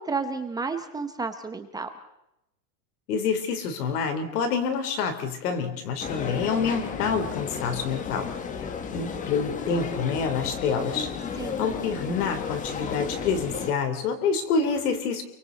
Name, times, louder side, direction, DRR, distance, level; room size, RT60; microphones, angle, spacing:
voice 1, 0.0-1.9 11.4-11.6, right 4 dB, 10° right, 7 dB, 0.8 m, -31 dB
voice 2, 3.1-8.3 8.9-11.1 11.6-15.2, left 5 dB, 80° left, 8 dB, 3.9 m, -27 dB
sound 1, 6.0-13.7, left 6 dB, 15° left, 1.1 m, -33 dB
29.0 x 23.5 x 4.1 m, 0.85 s
supercardioid pair, 160°, 45 cm